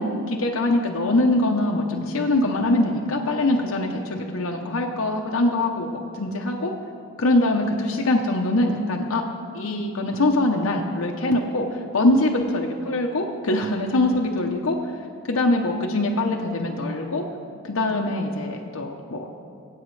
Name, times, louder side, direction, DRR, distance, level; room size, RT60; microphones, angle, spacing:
voice 1, 0.0-6.7 7.2-9.2 9.5-14.8 15.3-17.2 17.6-19.3, left 2 dB, 70° left, 1 dB, 0.7 m, -23 dB
21.0 x 8.6 x 3.2 m, 2.5 s
head